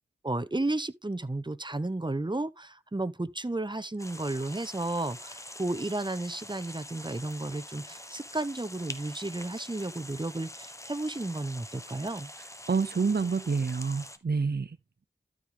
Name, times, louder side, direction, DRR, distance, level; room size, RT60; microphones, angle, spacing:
voice 1, 0.2-12.3, right 2 dB, 25° right, 0.8 m, -33 dB
sound 1, 4.0-14.2, left 1 dB, 15° left, 1.3 m, -45 dB
voice 2, 12.7-14.7, right 5 dB, 60° right, 0.6 m, -27 dB
12.5 x 5.0 x 3.7 m
wide cardioid pair, 45°, 19 cm